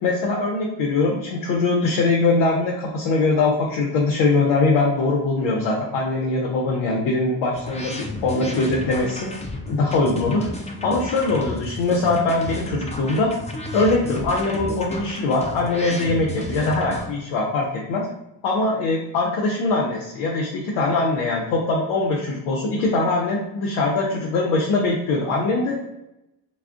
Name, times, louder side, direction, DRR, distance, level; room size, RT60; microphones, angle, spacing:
voice 1, 0.0-9.3 9.7-10.5 10.8-13.4 13.7-18.1 18.4-25.8, left 3 dB, 80° left, -2 dB, 0.6 m, -22 dB
sound 1, 7.5-17.1, left 1 dB, 15° left, 0.6 m, -33 dB
2.3 x 2.1 x 3.4 m, 0.88 s
supercardioid pair, 45°, 46 cm